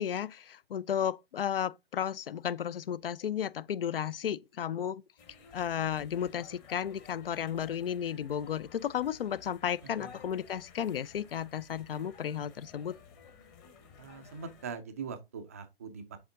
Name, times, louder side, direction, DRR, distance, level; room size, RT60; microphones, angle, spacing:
voice 1, 0.0-5.0 5.5-12.9, left 9 dB, 65° left, 0.5 m, -33 dB
sound 1, 5.2-14.7, left 5 dB, 20° left, 1.0 m, -55 dB
voice 2, 9.8-10.1 14.0-16.2, right 6 dB, 15° right, 0.4 m, -42 dB
7.2 x 3.6 x 3.7 m
hypercardioid pair, 150°, 30 cm